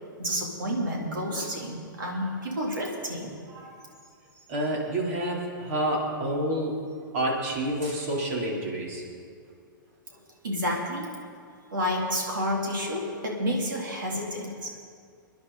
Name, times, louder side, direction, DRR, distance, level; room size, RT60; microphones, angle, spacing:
voice 1, 0.2-3.8 10.4-11.1 11.7-14.8, equal, 70° right, -1 dB, 3.6 m, -30 dB
voice 2, 4.5-6.8 7.1-9.0, right 1 dB, 45° right, -2 dB, 4.1 m, -28 dB
27.5 x 10.5 x 4.3 m, 2.2 s
figure-of-eight pair, 110°, 11 cm